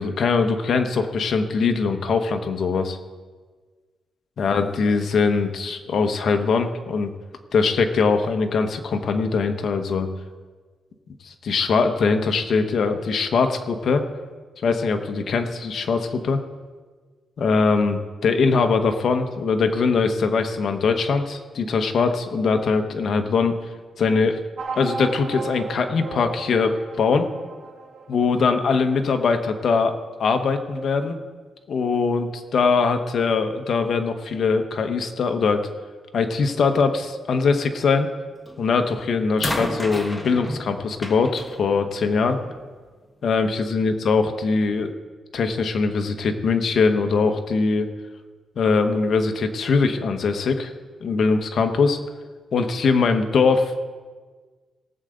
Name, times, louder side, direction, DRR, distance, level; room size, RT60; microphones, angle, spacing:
voice 1, 0.0-3.0 4.4-7.1 7.5-10.1 11.2-14.0 14.6-16.4 17.4-23.6 24.0-24.4 24.8-27.3 28.1-31.2 31.7-35.6 36.1-38.1 38.6-42.4 43.2-44.9 45.3-47.9 48.6-50.7 51.0-52.0 52.5-53.8, left 4 dB, 60° left, 6 dB, 1.1 m, -21 dB
sound 1, 24.6-29.5, right 4 dB, 60° right, 2.3 m, -36 dB
sound 2, 38.5-38.8 39.4-42.7 43.7-43.8, left 1 dB, 15° left, 1.4 m, -32 dB
18.5 x 7.9 x 3.9 m, 1.4 s
cardioid pair, 100°, 0 cm